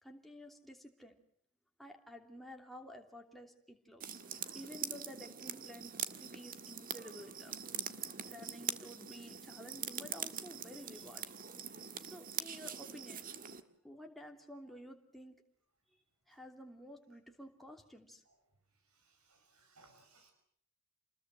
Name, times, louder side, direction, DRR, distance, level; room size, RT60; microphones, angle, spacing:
voice 1, 0.0-1.1 1.8-4.2 4.5-5.9 6.2-7.5 8.2-11.3 12.0-13.3 13.8-15.4 16.3-18.2, equal, ahead, 2 dB, 3.0 m, -52 dB
sound 1, 4.0-13.6, right 8 dB, 40° right, 1.8 m, -43 dB
voice 2, 19.3-20.3, right 3 dB, 85° right, 5 dB, 6.1 m, -64 dB
28.5 x 21.0 x 7.9 m, 0.62 s
head